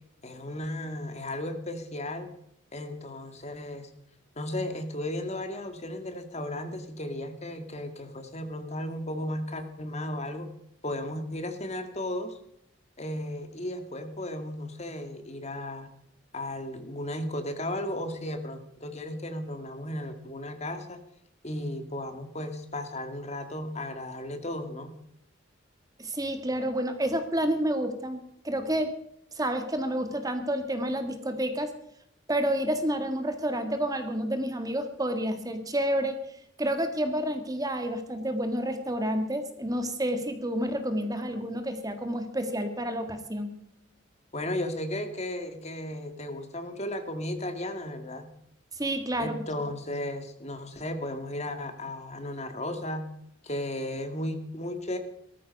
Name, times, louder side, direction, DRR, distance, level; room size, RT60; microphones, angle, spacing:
voice 1, 0.2-2.3 2.7-3.9 4.4-10.5 10.8-12.4 13.0-15.9 16.3-21.0 21.4-25.0 44.3-48.3 49.2-53.1 53.4-55.0, left 1 dB, 35° left, 7 dB, 2.0 m, -35 dB
voice 2, 26.0-28.9 29.3-31.7 32.3-43.5 48.7-49.4, right 1 dB, 20° right, 7 dB, 1.7 m, -29 dB
18.5 x 14.0 x 5.3 m, 0.74 s
head